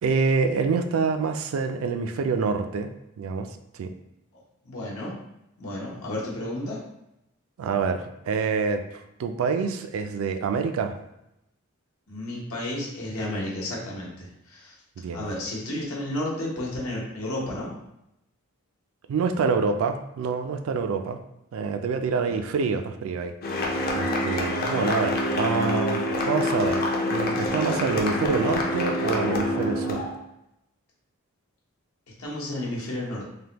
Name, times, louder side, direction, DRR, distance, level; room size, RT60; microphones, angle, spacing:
voice 1, 0.0-2.9 3.2-3.5 3.7-3.9 7.6-10.9 15.0-15.3 19.1-21.2 21.5-23.3 23.9-26.8 27.1-30.0, right 5 dB, 70° right, 7 dB, 0.3 m, -26 dB
voice 2, 4.6-5.2 5.6-6.8 12.1-14.7 15.1-17.7 22.2-22.5 32.2-33.2, left 1 dB, 80° left, -4 dB, 1.0 m, -32 dB
sound 1, 23.4-30.2, left 1 dB, 45° left, 0.5 m, -26 dB
3.4 x 2.1 x 2.9 m, 0.85 s
head